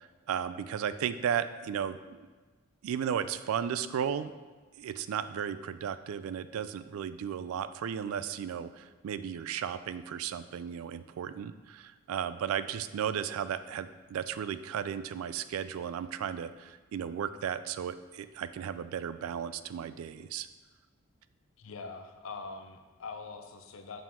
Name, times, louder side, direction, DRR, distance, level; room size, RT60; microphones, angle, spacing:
voice 1, 0.0-2.3 2.8-4.3 4.8-20.5, right 8 dB, 85° right, 14 dB, 0.3 m, -35 dB
voice 2, 21.6-24.0, left 4 dB, 70° left, 6 dB, 0.6 m, -43 dB
5.6 x 4.8 x 3.5 m, 1.3 s
head